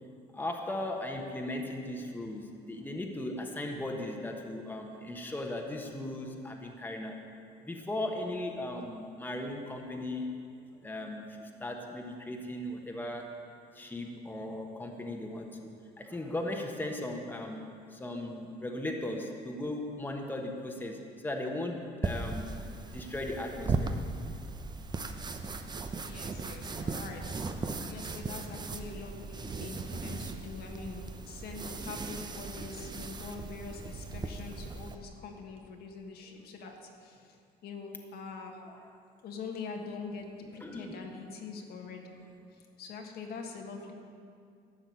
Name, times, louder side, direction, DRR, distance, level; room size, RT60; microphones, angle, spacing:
voice 1, 0.3-7.2 7.6-10.3 10.8-13.3 13.7-15.7 16.0-22.5 22.9-23.9 38.7-38.8 40.6-41.0, left 1 dB, 10° left, 1 dB, 1.3 m, -37 dB
sound 1, 22.0-35.0, right 3 dB, 25° right, 0.7 m, -37 dB
voice 2, 26.0-37.4 37.6-38.6 39.2-42.2 42.5-43.9, left 4 dB, 70° left, 2 dB, 1.5 m, -44 dB
12.0 x 5.9 x 8.3 m, 2.4 s
cardioid pair, 110°, 17 cm